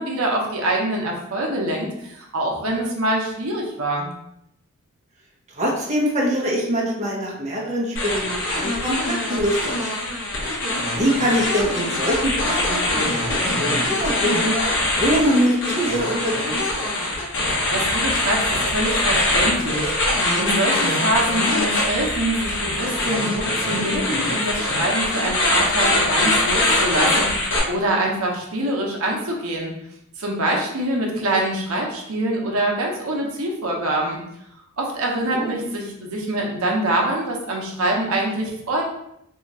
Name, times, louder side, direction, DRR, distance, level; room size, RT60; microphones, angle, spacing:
voice 1, 0.0-4.1 17.5-29.7 30.2-34.2 34.8-38.8, right 1 dB, 75° right, 0 dB, 0.7 m, -25 dB
voice 2, 5.5-10.1 10.9-14.6 15.0-16.3 16.8-16.9 35.3-35.6, equal, 30° right, -3 dB, 0.7 m, -24 dB
sound 1, 8.0-27.6, left 1 dB, 55° left, 1.0 m, -23 dB
2.8 x 2.4 x 4.1 m, 0.77 s
head